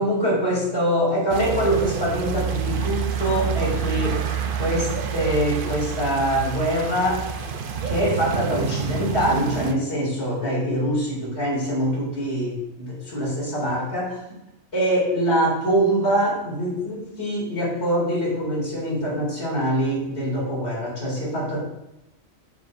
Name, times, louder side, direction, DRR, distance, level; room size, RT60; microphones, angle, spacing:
voice 1, 0.0-4.2 4.5-7.3 7.8-14.2 14.7-21.6, equal, 50° left, -4 dB, 3.0 m, -24 dB
sound 1, 1.3-9.7, right 7 dB, 55° right, 0.7 m, -28 dB
8.0 x 7.0 x 2.6 m, 0.90 s
omnidirectional pair, 1.4 m